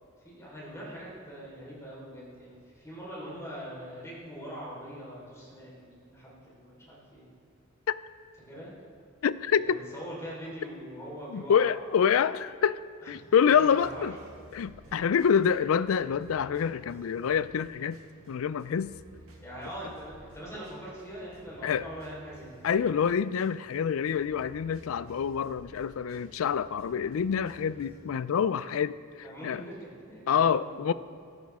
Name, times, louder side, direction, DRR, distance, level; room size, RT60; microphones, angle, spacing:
voice 1, 0.2-7.4 8.5-8.7 9.5-11.8 13.0-13.1 13.6-14.1 19.3-22.7 29.2-30.9, equal, 15° left, -6 dB, 4.0 m, -42 dB
voice 2, 9.2-9.8 11.3-14.2 14.5-18.0 18.3-18.9 21.6-21.8 22.6-29.6 30.3-30.9, left 7 dB, 75° left, 16 dB, 0.4 m, -26 dB
sound 1, 13.5-28.0, right 1 dB, 80° right, 1.9 m, -54 dB
14.5 x 13.5 x 3.6 m, 2.2 s
head